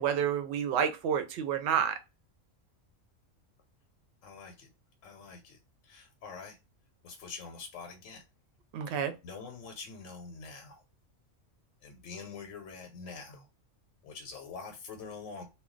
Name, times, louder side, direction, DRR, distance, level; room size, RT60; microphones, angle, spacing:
voice 1, 0.0-2.0 8.7-9.1, right 8 dB, 65° right, 0.8 m, -29 dB
voice 2, 4.2-4.7 5.0-5.6 5.8-6.6 7.0-8.2 8.9-9.0 9.2-10.8 11.8-13.4 14.0-15.4, left 5 dB, 80° left, 1.0 m, -45 dB
2.3 x 2.2 x 3.7 m
omnidirectional pair, 1.3 m